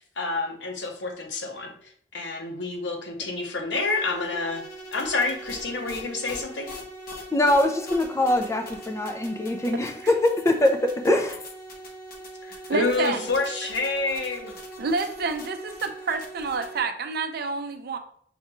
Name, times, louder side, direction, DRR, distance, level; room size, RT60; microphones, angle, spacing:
voice 1, 0.0-4.6 4.9-6.7 12.4-14.5, left 3 dB, 90° left, 0.8 m, -28 dB
sound 1, 3.7-16.8, right 1 dB, 55° left, 0.9 m, -41 dB
voice 2, 7.3-11.4, left 1 dB, 15° left, 0.4 m, -23 dB
voice 3, 12.7-13.3 14.8-18.0, right 4 dB, 60° right, 0.5 m, -28 dB
5.6 x 2.3 x 3.0 m
head